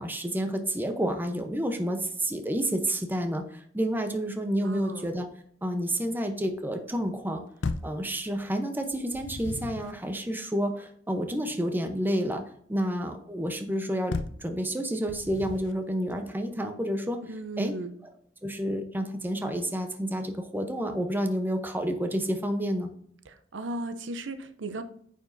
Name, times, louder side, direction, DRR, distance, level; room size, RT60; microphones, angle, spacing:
voice 1, 0.0-5.3 5.6-7.4 7.8-12.4 12.7-17.2 17.6-17.7 18.4-22.9, equal, 10° right, 5 dB, 0.8 m, -29 dB
voice 2, 4.6-5.1 17.2-18.0 23.3-24.8, right 2 dB, 80° right, 10 dB, 0.6 m, -36 dB
sound 1, 7.6-8.0 8.9-10.0 14.1-14.5 15.1-15.8, left 3 dB, 75° left, 0.5 m, -34 dB
9.1 x 5.2 x 2.6 m, 0.64 s
head